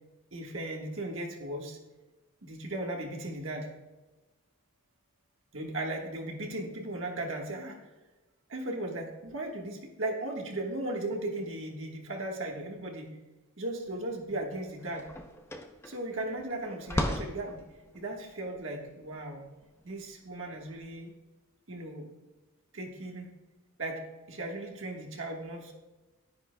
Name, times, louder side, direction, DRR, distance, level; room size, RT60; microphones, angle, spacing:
voice 1, 0.3-1.8 2.4-3.7 5.5-7.8 8.5-13.2 13.6-15.1 15.8-17.7 17.9-19.4 19.8-21.1 21.7-22.1 22.7-23.2 23.8-25.7, right 2 dB, 60° right, 1 dB, 1.4 m, -37 dB
sound 1, 13.9-14.1 14.4-20.9, left 1 dB, 10° left, 0.6 m, -38 dB
10.5 x 10.0 x 2.2 m, 1.1 s
head